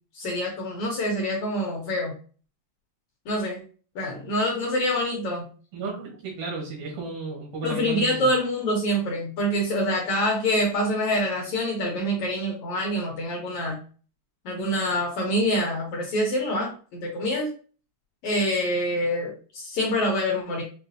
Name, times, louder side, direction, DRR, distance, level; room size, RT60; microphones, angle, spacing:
voice 1, 0.1-2.1 3.3-3.6 3.9-5.5 7.6-13.8 14.4-17.5 18.2-20.6, equal, 70° left, -1 dB, 1.4 m, -26 dB
voice 2, 5.7-8.3, right 3 dB, 80° right, -1 dB, 3.2 m, -33 dB
6.6 x 2.4 x 2.6 m, 0.39 s
omnidirectional pair, 3.7 m